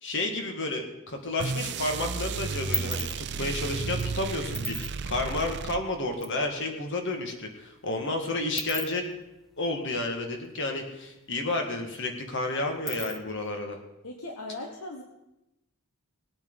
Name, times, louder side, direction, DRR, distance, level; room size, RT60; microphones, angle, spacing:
voice 1, 0.0-9.1 9.6-13.8, left 2 dB, 55° left, 3 dB, 1.9 m, -31 dB
sound 1, 1.1-1.9 2.2-6.4 6.7-6.8 7.0-10.8 11.1-11.2 11.5-13.5, right 1 dB, ahead, 1.0 m, -38 dB
sound 2, 1.4-6.2, right 4 dB, 50° right, 0.5 m, -33 dB
voice 2, 14.0-15.0, left 2 dB, 75° left, 2 dB, 1.3 m, -38 dB
20.0 x 8.9 x 4.0 m, 0.91 s
head